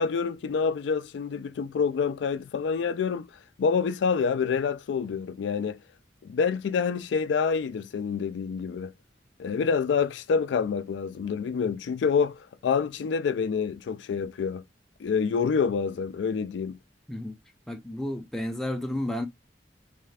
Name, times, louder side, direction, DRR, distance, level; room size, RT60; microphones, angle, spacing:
voice 1, 0.0-3.3 3.6-5.8 6.2-8.9 9.4-14.6 15.0-16.8, left 6 dB, 85° left, 0.3 m, -27 dB
voice 2, 17.7-19.3, left 1 dB, 5° left, 0.4 m, -31 dB
3.2 x 2.4 x 3.3 m
head